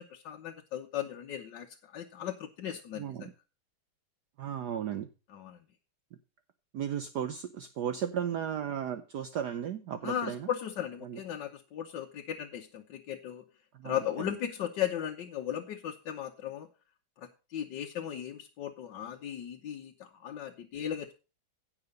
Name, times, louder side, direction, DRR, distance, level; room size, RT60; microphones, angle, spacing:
voice 1, 0.0-3.3 5.3-5.6 10.0-13.4 13.8-16.7 17.2-21.1, left 10 dB, 65° left, 3 dB, 1.5 m, -37 dB
voice 2, 2.9-3.3 4.4-5.1 6.7-10.5 11.0-11.2 13.7-14.0, right 9 dB, 65° right, 10 dB, 1.2 m, -35 dB
16.0 x 5.9 x 5.3 m, 0.33 s
omnidirectional pair, 2.3 m